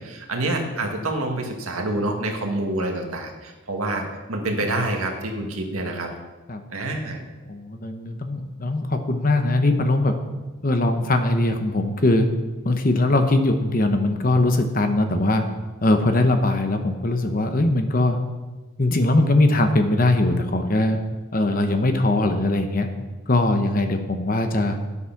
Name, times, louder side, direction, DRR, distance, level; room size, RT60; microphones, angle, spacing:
voice 1, 0.0-6.1 6.7-7.2, right 2 dB, 80° right, 2 dB, 1.8 m, -27 dB
voice 2, 7.5-10.1 10.6-12.3 12.6-15.4 15.8-18.2 18.8-21.0 21.3-22.9 23.3-24.8, left 2 dB, 40° left, 6 dB, 0.9 m, -21 dB
10.5 x 8.1 x 5.9 m, 1.2 s
head